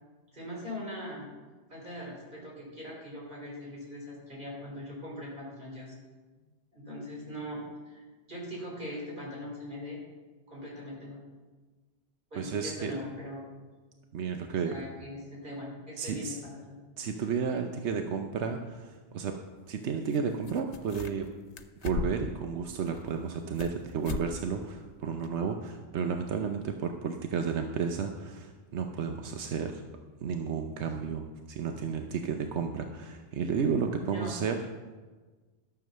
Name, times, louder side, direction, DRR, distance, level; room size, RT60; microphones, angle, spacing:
voice 1, 0.3-1.3 1.7-5.9 6.7-10.0 10.5-11.2 12.3-13.5 14.6-16.8 34.1-34.3, left 1 dB, 45° right, -3 dB, 4.0 m, -41 dB
voice 2, 12.3-12.9 14.1-14.7 16.0-16.4 17.0-19.4 19.7-21.3 21.8-29.8 30.2-34.6, right 6 dB, 90° right, 5 dB, 1.1 m, -32 dB
sound 1, 20.1-20.2 20.4-21.3 21.6-22.4 22.9-23.8 24.0-24.3 24.6-24.7 25.2-25.3, left 5 dB, 90° left, 1.1 m, -37 dB
12.5 x 7.1 x 6.5 m, 1.3 s
omnidirectional pair, 1.1 m